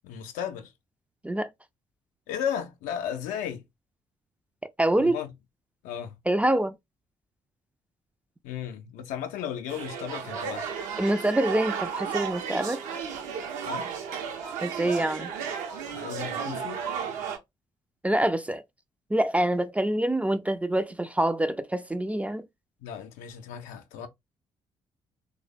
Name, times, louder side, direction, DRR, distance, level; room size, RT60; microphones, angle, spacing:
voice 1, 0.0-0.7 2.3-3.6 5.0-5.3 5.8-6.1 8.4-10.7 13.6-13.9 15.9-16.8 22.8-24.1, left 9 dB, 65° left, 0.5 m, -35 dB
voice 2, 4.8-5.2 6.3-6.7 11.0-12.8 14.6-15.3 18.0-18.6 19.1-22.4, right 1 dB, 10° right, 0.3 m, -25 dB
sound 1, 9.7-17.4, right 7 dB, 60° right, 0.6 m, -33 dB
3.1 x 2.0 x 2.3 m
figure-of-eight pair, 40°, 15 cm